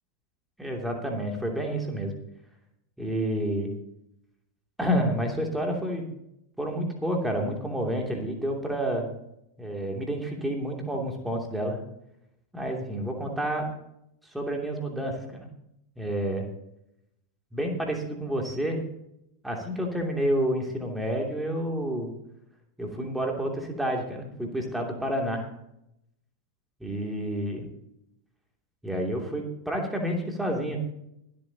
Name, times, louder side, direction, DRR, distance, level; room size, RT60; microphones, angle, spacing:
voice 1, 0.6-2.1 3.0-3.7 4.8-6.1 6.6-9.1 9.6-11.8 12.5-13.7 14.3-15.5 16.0-16.5 17.5-18.8 19.4-22.1 22.8-25.5 26.8-27.7 28.8-30.8, equal, 5° right, 1 dB, 2.8 m, -29 dB
24.0 x 8.6 x 2.9 m, 0.80 s
figure-of-eight pair, 90°, 0 cm